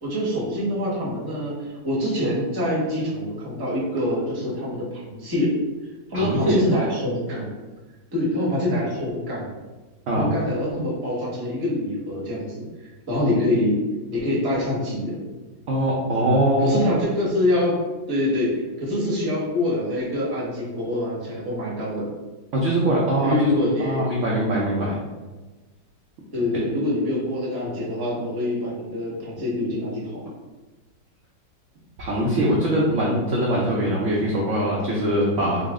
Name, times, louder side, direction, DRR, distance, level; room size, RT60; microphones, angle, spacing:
voice 1, 0.0-5.6 6.1-7.5 8.1-9.5 10.1-12.6 13.1-13.8 14.1-15.2 16.6-22.1 23.2-24.1 26.3-30.2, left 1 dB, 20° right, -6 dB, 0.6 m, -25 dB
voice 2, 6.1-6.6 10.1-10.3 15.7-16.8 22.5-23.4 23.8-25.0 32.0-35.7, right 1 dB, 70° right, -4 dB, 0.7 m, -22 dB
3.9 x 2.0 x 3.5 m, 1.2 s
omnidirectional pair, 1.9 m